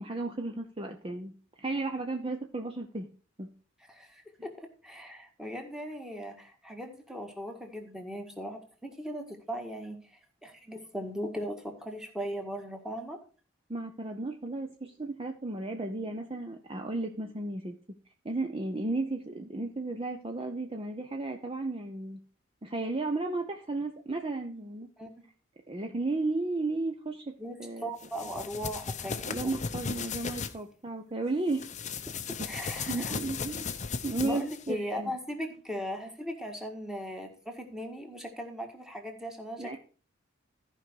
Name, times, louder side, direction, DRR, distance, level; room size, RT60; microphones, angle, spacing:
voice 1, 0.0-1.3 1.6-3.1 3.4-3.5 13.7-17.8 18.2-22.2 22.6-24.9 25.7-27.3 27.6-27.9 29.3-31.7 32.4-33.7 34.0-35.1 39.6-39.8, right 2 dB, 30° right, 4 dB, 0.8 m, -34 dB
voice 2, 3.9-10.0 10.4-13.2 25.0-25.2 27.4-27.6 27.8-29.5 32.4-33.1 34.2-39.8, equal, 5° right, 3 dB, 1.8 m, -38 dB
sound 1, 28.0-30.5 31.5-34.7, left 5 dB, 35° left, 0.7 m, -36 dB
14.0 x 5.4 x 4.7 m, 0.38 s
head